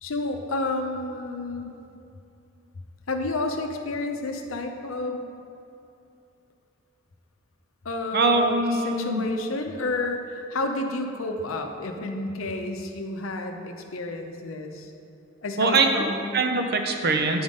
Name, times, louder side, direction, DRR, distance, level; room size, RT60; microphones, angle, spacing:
voice 1, 0.0-1.7 3.1-5.2 7.8-14.9 15.4-16.4, left 2 dB, 80° left, 4 dB, 0.7 m, -30 dB
voice 2, 8.1-9.2 15.6-15.9 16.3-17.4, right 3 dB, 50° right, 4 dB, 0.6 m, -22 dB
8.7 x 3.7 x 5.1 m, 2.6 s
head